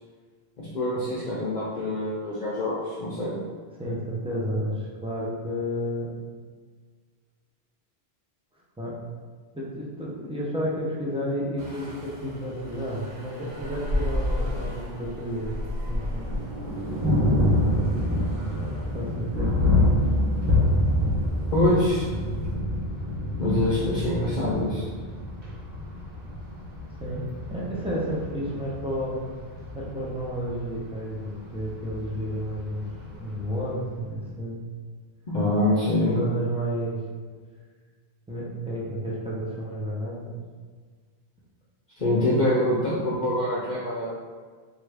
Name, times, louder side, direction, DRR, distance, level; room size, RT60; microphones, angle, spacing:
voice 1, 0.6-3.3 21.5-22.1 23.4-24.8 35.3-36.2 42.0-44.1, left 1 dB, 55° left, -6 dB, 0.6 m, -25 dB
voice 2, 3.7-6.1 8.8-9.0 9.5-15.6 15.9-16.3 18.9-19.7 27.0-27.2 27.5-29.2 29.7-32.9 33.2-34.6 36.0-37.0 38.3-40.4 42.2-42.4, equal, 10° right, -6 dB, 0.3 m, -31 dB
sound 1, 11.6-22.5, left 1 dB, 85° right, 1.0 m, -35 dB
Thunder, 15.8-33.8, left 1 dB, 65° right, 1.0 m, -27 dB
3.2 x 2.3 x 3.3 m, 1.5 s
omnidirectional pair, 1.1 m